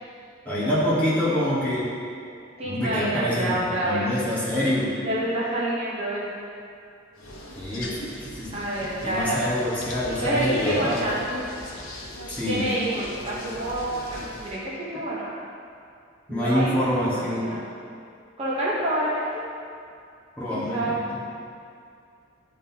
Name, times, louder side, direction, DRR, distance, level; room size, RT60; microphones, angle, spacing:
voice 1, 0.4-1.9 2.6-4.9 7.6-8.0 8.3-8.6 9.0-11.0 12.3-12.7 16.3-17.6 20.4-21.2, left 1 dB, 5° left, -9 dB, 1.3 m, -26 dB
voice 2, 2.6-4.2 5.0-6.3 8.5-9.4 10.2-11.4 12.4-15.3 16.3-16.7 17.0-17.6 18.4-19.4 20.5-21.0, right 1 dB, 30° right, -8 dB, 0.9 m, -28 dB
sound 1, 7.2-14.6, left 1 dB, 85° left, 0.9 m, -36 dB
10.0 x 3.7 x 2.8 m, 2.4 s
head